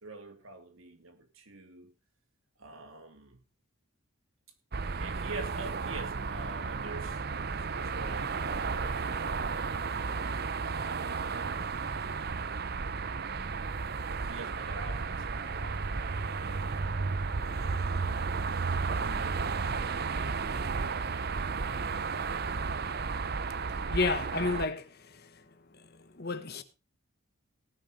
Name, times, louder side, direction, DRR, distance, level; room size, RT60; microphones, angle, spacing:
voice 1, 0.0-1.9 2.6-3.4 5.0-9.5 14.1-17.3 18.7-19.6 21.6-21.7, right 3 dB, 70° right, 3.0 m, -46 dB
sound 1, 4.7-24.7, right 4 dB, 45° right, 0.6 m, -33 dB
voice 2, 23.9-25.4 25.7-26.6, left 3 dB, 45° left, 1.2 m, -32 dB
18.5 x 6.6 x 5.2 m
head